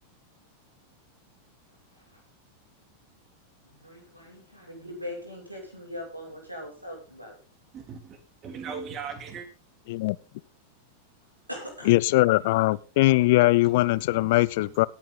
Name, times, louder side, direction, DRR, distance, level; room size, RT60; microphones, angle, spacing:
voice 1, 3.6-7.4 11.5-11.9, left 1 dB, 85° right, 6.4 m, -40 dB
voice 2, 7.7-9.5 14.1-14.3 14.6-14.7, right 6 dB, 30° right, 2.9 m, -38 dB
voice 3, 11.9-14.9, left 19 dB, 50° left, 0.5 m, -21 dB
18.0 x 8.8 x 4.1 m
figure-of-eight pair, 90°, 0 cm